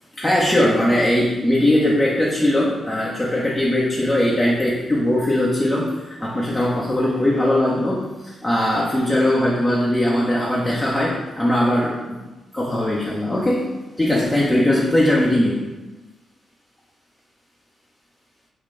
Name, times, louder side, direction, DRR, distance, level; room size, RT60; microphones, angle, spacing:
voice 1, 0.2-12.2 12.5-15.7, left 1 dB, 15° left, -5 dB, 0.8 m, -20 dB
3.8 x 2.3 x 3.7 m, 1.2 s
hypercardioid pair, 45°, 0 cm